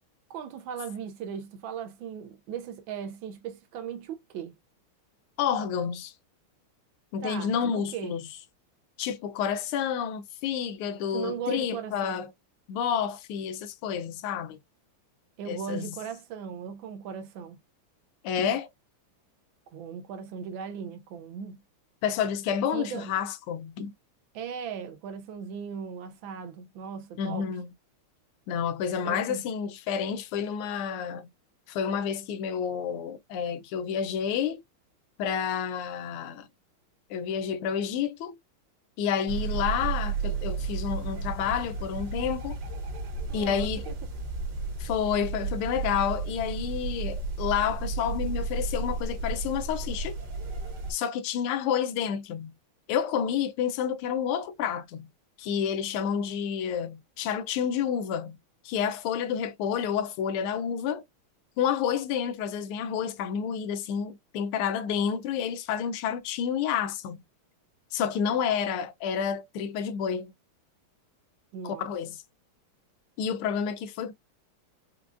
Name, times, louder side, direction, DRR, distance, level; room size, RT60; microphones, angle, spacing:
voice 1, 0.3-4.5 7.2-8.1 11.1-12.2 15.4-17.6 19.7-21.6 22.7-23.1 24.3-27.5 29.0-29.4 43.3-43.9 71.5-71.9, right 7 dB, 75° right, 1.2 m, -38 dB
voice 2, 5.4-6.1 7.1-8.3 9.0-12.3 12.7-14.6 15.5-16.0 18.2-18.7 22.0-23.9 27.2-27.7 28.5-31.3 31.7-34.6 35.2-36.5 37.1-38.4 39.0-42.6 43.3-43.8 44.8-50.2 50.9-52.5 52.9-55.1 55.4-58.4 58.6-61.0 61.6-67.2 67.9-70.3 71.6-72.2 73.2-74.1, left 8 dB, 90° left, 1.5 m, -29 dB
sound 1, 39.3-50.9, right 4 dB, 55° right, 1.4 m, -33 dB
4.9 x 2.3 x 2.4 m
omnidirectional pair, 2.3 m